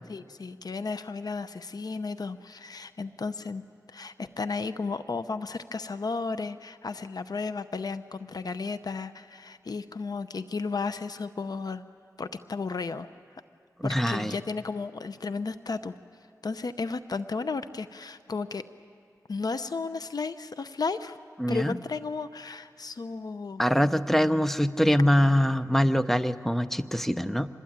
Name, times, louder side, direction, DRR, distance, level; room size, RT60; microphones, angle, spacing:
voice 1, 0.1-3.6 3.9-11.8 12.2-13.1 13.8-15.9 16.4-18.6 19.3-21.2 21.5-23.6, left 4 dB, 70° left, 11 dB, 0.7 m, -34 dB
voice 2, 13.8-14.4 21.4-21.8 23.6-27.5, equal, 5° left, 11 dB, 0.8 m, -24 dB
26.0 x 21.0 x 8.9 m, 2.2 s
wide cardioid pair, 65°, 7 cm